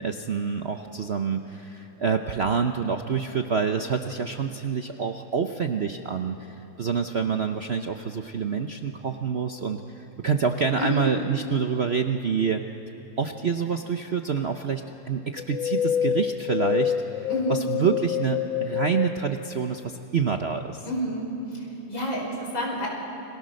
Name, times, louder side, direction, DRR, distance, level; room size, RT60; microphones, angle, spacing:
voice 1, 0.0-12.6 13.2-20.9, right 6 dB, 55° right, 5 dB, 0.7 m, -27 dB
sound 1, 15.4-19.1, left 9 dB, 50° left, 1.2 m, -27 dB
voice 2, 17.3-17.7 20.9-22.9, equal, 80° left, -1 dB, 5.8 m, -29 dB
30.0 x 24.0 x 6.5 m, 2.9 s
omnidirectional pair, 2.1 m